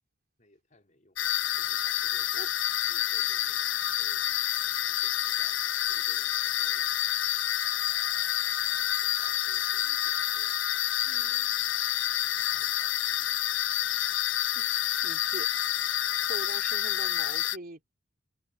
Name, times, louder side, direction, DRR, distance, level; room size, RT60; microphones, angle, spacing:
voice 1, 0.4-2.5 2.8-3.7 4.0-4.2 4.6-7.0 8.7-10.7 11.1-11.5 12.2-13.0, left 1 dB, 40° left, 4.8 m, -61 dB
sound 1, 1.2-17.6, left 12 dB, 70° left, 0.6 m, -28 dB
Wind instrument woodwind instrument, 7.6-11.5, left 2 dB, 20° left, 4.0 m, -65 dB
voice 2, 11.1-11.5 14.5-15.5 16.3-17.8, right 2 dB, 50° right, 3.4 m, -43 dB
head